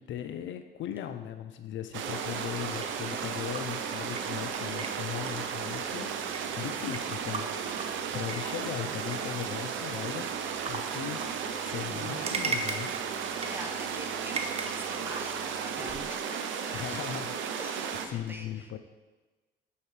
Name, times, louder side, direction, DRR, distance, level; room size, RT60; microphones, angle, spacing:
voice 1, 0.0-6.3 6.5-10.3 10.7-11.3 11.6-12.9 16.7-17.4 18.1-18.8, left 10 dB, 70° left, 9 dB, 0.4 m, -38 dB
sound 1, 1.9-18.1, right 7 dB, 75° right, 0.5 m, -34 dB
sound 2, 2.6-16.0, right 3 dB, 30° right, 0.6 m, -41 dB
voice 2, 13.3-17.3 17.6-18.8, equal, 10° right, 1 dB, 0.9 m, -45 dB
6.5 x 5.5 x 3.1 m, 1.2 s
cardioid pair, 90°, 20 cm